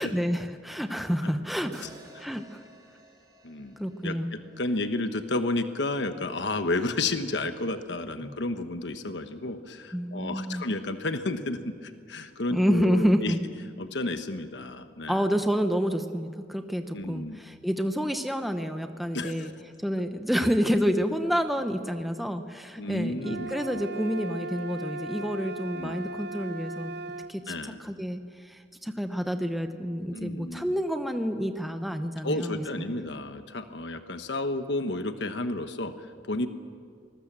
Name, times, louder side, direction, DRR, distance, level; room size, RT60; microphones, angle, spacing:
voice 1, 0.0-1.9 2.2-2.6 3.8-4.4 8.2-8.3 9.9-10.6 12.5-13.4 15.1-19.5 19.8-26.9 27.3-27.5 27.8-32.9, equal, ahead, 6 dB, 1.0 m, -28 dB
sound 1, 1.7-6.0, right 1 dB, 20° right, 4.1 m, -56 dB
voice 2, 3.4-3.8 4.0-13.3 13.8-15.2 16.9-17.4 19.1-19.5 22.8-23.8 25.7-26.0 27.5-27.8 30.1-30.7 32.2-36.5, left 2 dB, 70° left, 8 dB, 1.2 m, -32 dB
sound 2, 23.2-27.3, right 2 dB, 60° right, 0.7 m, -37 dB
25.5 x 20.0 x 7.5 m, 2.1 s
head